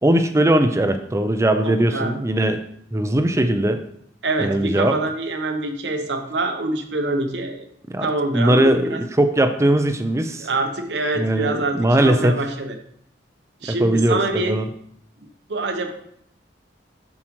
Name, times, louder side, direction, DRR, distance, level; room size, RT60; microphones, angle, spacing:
voice 1, 0.0-2.6 2.9-3.8 4.4-4.9 7.9-8.1 8.3-10.5 11.2-12.4 13.7-14.7, right 1 dB, 15° right, 8 dB, 0.5 m, -19 dB
voice 2, 1.6-2.2 4.2-7.7 8.0-9.0 10.4-12.7 13.6-14.6 15.5-15.9, right 2 dB, 70° right, 5 dB, 0.9 m, -25 dB
7.2 x 6.4 x 3.1 m, 0.69 s
head